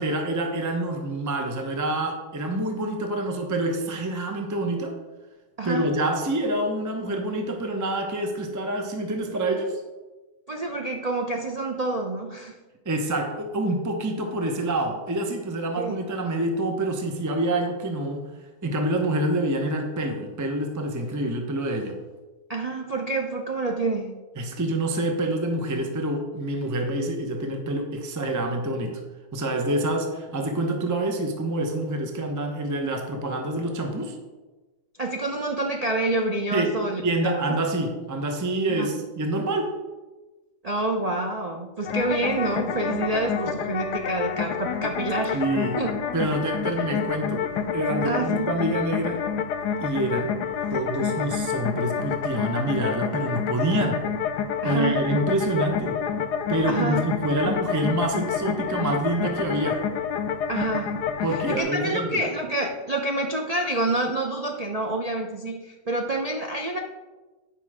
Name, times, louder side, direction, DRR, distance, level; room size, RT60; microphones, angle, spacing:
voice 1, 0.0-5.0 5.6-9.8 12.9-18.3 18.6-22.0 24.4-29.0 29.3-34.2 36.5-36.7 37.0-39.7 45.3-45.8 46.1-47.5 47.7-49.2 49.8-50.4 50.7-54.1 54.6-56.0 56.5-59.8 61.2-62.3, right 1 dB, 20° right, 3 dB, 0.6 m, -27 dB
voice 2, 5.6-5.9 10.5-12.6 15.8-16.0 22.5-24.1 35.0-37.4 38.7-38.9 40.6-45.4 45.8-45.9 48.0-48.5 54.6-55.0 56.7-57.0 60.5-61.0 61.3-66.8, right 2 dB, 85° right, 1 dB, 0.3 m, -27 dB
sound 1, 41.9-61.6, left 7 dB, 80° left, 1.3 m, -28 dB
9.5 x 5.5 x 4.8 m, 1.2 s
omnidirectional pair, 1.8 m